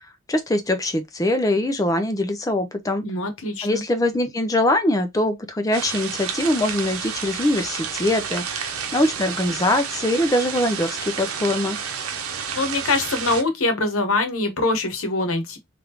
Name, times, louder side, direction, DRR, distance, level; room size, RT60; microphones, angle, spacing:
voice 1, 0.3-3.0 3.6-11.8, left 1 dB, 15° left, 0.5 m, -22 dB
voice 2, 3.0-3.8 12.5-15.6, left 2 dB, 75° left, 1.0 m, -23 dB
sound 1, 5.7-13.4, right 7 dB, 90° right, 0.7 m, -30 dB
3.5 x 2.5 x 2.9 m
head